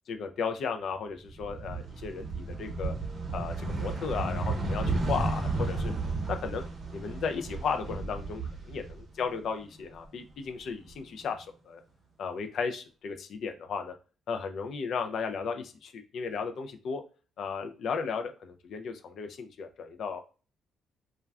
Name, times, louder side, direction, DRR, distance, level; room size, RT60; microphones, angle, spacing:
voice 1, 0.1-2.9 3.3-5.9 6.3-6.6 6.9-11.8 12.2-13.9 14.3-17.0 17.4-20.2, left 5 dB, 65° left, 6 dB, 0.4 m, -35 dB
sound 1, 1.3-9.4 9.7-10.9, right 3 dB, 40° right, 0.7 m, -33 dB
2.4 x 2.2 x 3.3 m, 0.35 s
cardioid pair, 90°, 0 cm